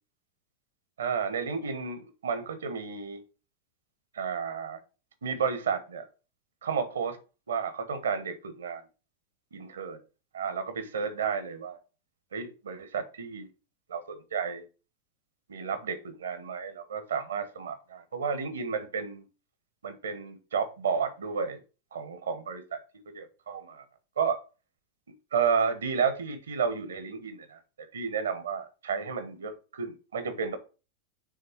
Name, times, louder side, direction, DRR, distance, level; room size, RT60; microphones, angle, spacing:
voice 1, 1.0-3.2 4.1-4.8 5.2-6.0 6.6-7.2 7.5-8.8 9.5-10.0 10.3-11.8 12.3-13.5 13.9-14.6 15.5-19.2 19.8-21.6 21.9-22.6 23.1-23.8 24.2-24.4 25.3-27.6 27.9-30.6, right 6 dB, 75° right, 9 dB, 1.3 m, -32 dB
6.4 x 3.8 x 6.1 m, 0.33 s
figure-of-eight pair, 90°, 0 cm